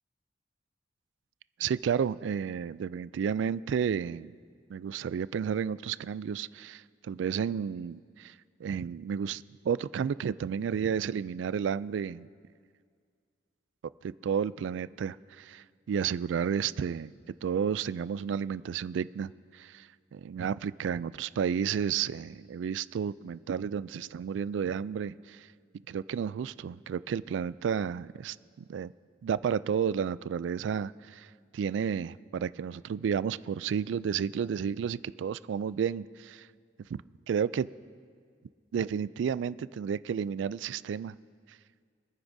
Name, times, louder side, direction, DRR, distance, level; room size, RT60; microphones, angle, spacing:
voice 1, 1.6-4.4 4.7-8.3 8.6-12.3 14.0-17.1 17.4-25.5 25.9-28.4 28.7-28.9 29.2-31.3 31.5-36.5 36.9-37.0 37.3-37.7 38.7-41.1, right 7 dB, 80° right, 0.3 m, -32 dB
25.5 x 9.6 x 2.7 m
head